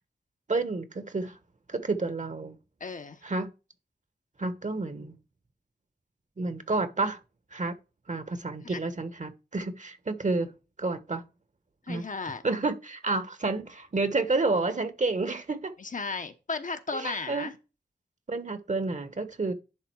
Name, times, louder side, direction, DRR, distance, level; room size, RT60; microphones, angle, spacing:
voice 1, 0.5-1.4 1.7-2.6 3.2-3.5 4.4-5.2 6.4-7.2 7.5-7.7 8.1-10.5 10.8-11.2 11.9-12.0 12.4-15.7 16.9-17.5 18.3-19.5, right 3 dB, 45° right, 1.2 m, -30 dB
voice 2, 2.8-3.2 8.6-8.8 11.9-12.4 15.8-17.5, left 4 dB, 50° left, 0.9 m, -35 dB
11.0 x 3.9 x 4.7 m
wide cardioid pair, 70°, 17 cm